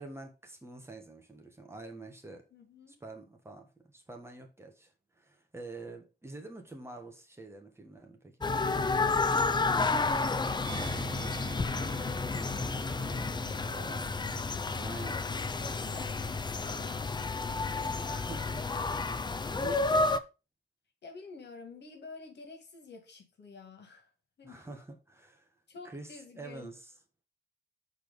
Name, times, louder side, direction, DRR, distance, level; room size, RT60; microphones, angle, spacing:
voice 1, 0.0-2.4 2.9-8.5 13.6-14.0 14.8-15.2 18.1-18.7 19.1-20.2 24.4-25.6 25.8-26.9, right 3 dB, 15° right, 1.4 m, -47 dB
voice 2, 2.5-2.9 9.3-18.5 21.0-24.1 24.4-24.8 25.7-26.7, left 4 dB, 75° left, 2.0 m, -50 dB
sound 1, 8.4-20.2, left 3 dB, 25° left, 0.4 m, -31 dB
Musical instrument, 10.6-15.9 16.1-16.3, right 11 dB, 75° right, 1.1 m, -54 dB
Bass guitar, 10.7-16.9, right 4 dB, 50° right, 0.5 m, -46 dB
6.8 x 4.3 x 5.2 m
wide cardioid pair, 170°, 18 cm